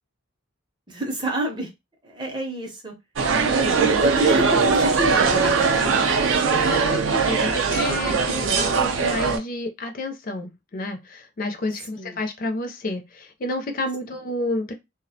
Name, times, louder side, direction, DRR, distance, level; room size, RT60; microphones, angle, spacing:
voice 1, 0.9-1.7 2.0-2.9 4.0-6.2 6.4-6.9 11.9-12.2, right 1 dB, 20° right, 0.6 m, -29 dB
sound 1, 3.2-9.4, right 4 dB, 70° right, 0.4 m, -20 dB
voice 2, 6.7-14.7, left 1 dB, 40° left, 0.4 m, -30 dB
2.3 x 2.0 x 2.7 m
head